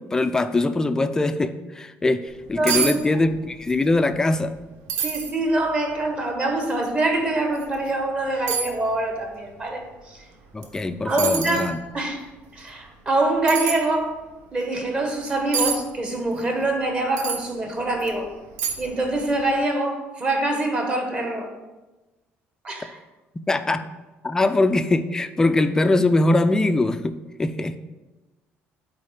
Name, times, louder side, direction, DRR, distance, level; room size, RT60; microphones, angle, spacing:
voice 1, 0.0-4.5 10.5-11.8 23.5-23.8 24.2-27.8, left 2 dB, 15° left, 10 dB, 0.3 m, -22 dB
sound 1, 2.3-2.4 2.7-3.0 3.2-3.8 4.2-4.3 4.9-5.3 6.0-6.1 7.6-7.7 8.5-8.8 10.6-10.8 11.2-11.7 13.5-13.8 15.5-15.8 17.2-17.4 18.0-18.1 18.6-19.0 19.3-19.4, right 7 dB, 80° right, 1.0 m, -26 dB
voice 2, 2.5-3.0 5.0-10.2 11.0-12.3 12.5-14.2 14.5-18.3 18.8-21.5 22.6-23.0, right 2 dB, 25° right, 3 dB, 1.1 m, -25 dB
8.4 x 4.0 x 4.9 m, 1.1 s
cardioid pair, 150°, 5 cm